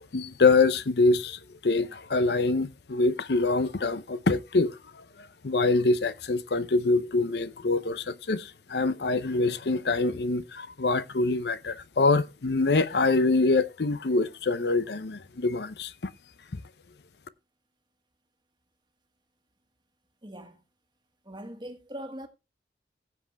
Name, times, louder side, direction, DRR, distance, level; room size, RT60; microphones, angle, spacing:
voice 1, 0.1-16.1 16.5-16.6, left 3 dB, 65° left, 0.7 m, -25 dB
voice 2, 20.2-20.6 21.2-22.3, equal, 25° right, 1.7 m, -41 dB
16.0 x 7.4 x 3.4 m
head